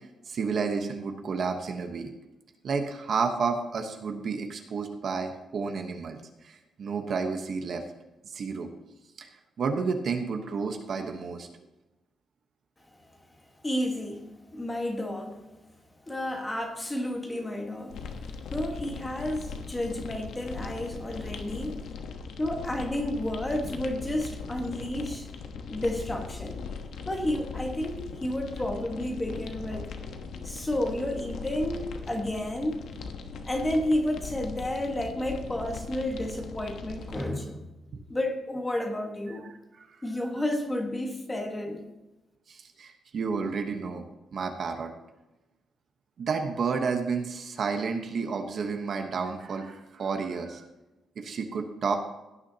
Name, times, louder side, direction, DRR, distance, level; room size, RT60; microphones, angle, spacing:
voice 1, 0.3-2.1 2.6-6.2 6.4-7.8 8.3-8.7 9.2-9.3 9.6-11.5 42.5-44.0 44.3-44.9 46.2-50.6 51.2-52.0, right 5 dB, 45° right, 1.1 m, -31 dB
voice 2, 13.6-15.4 16.1-18.0 18.5-21.9 22.4-25.3 25.7-26.6 27.1-29.9 30.4-32.8 33.5-37.7 38.1-39.4 40.0-41.8, left 1 dB, 10° left, 1.4 m, -31 dB
sound 1, 17.9-37.2, left 5 dB, 70° left, 1.2 m, -39 dB
17.0 x 9.8 x 2.9 m
wide cardioid pair, 180°, 0 cm